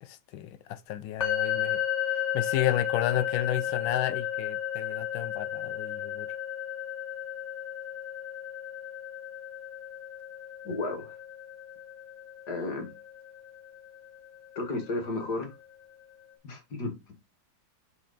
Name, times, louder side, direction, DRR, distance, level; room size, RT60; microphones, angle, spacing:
voice 1, 0.0-6.3, left 11 dB, 80° left, 1.4 m, -32 dB
sound 1, 1.2-15.1, left 10 dB, 40° left, 1.5 m, -34 dB
voice 2, 10.6-11.2 12.5-12.9 14.6-15.5 16.4-17.1, left 2 dB, 55° left, 2.2 m, -33 dB
5.9 x 4.6 x 4.0 m
omnidirectional pair, 2.1 m